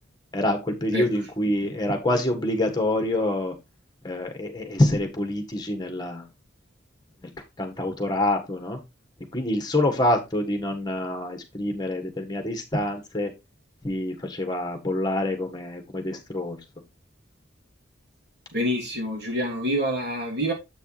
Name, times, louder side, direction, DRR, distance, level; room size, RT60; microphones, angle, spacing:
voice 1, 0.3-3.5 4.0-6.2 7.6-8.8 9.3-13.3 13.8-16.6, left 1 dB, 20° left, 1.5 m, -26 dB
voice 2, 18.5-20.5, equal, 55° right, 2.8 m, -26 dB
7.7 x 6.5 x 3.2 m
head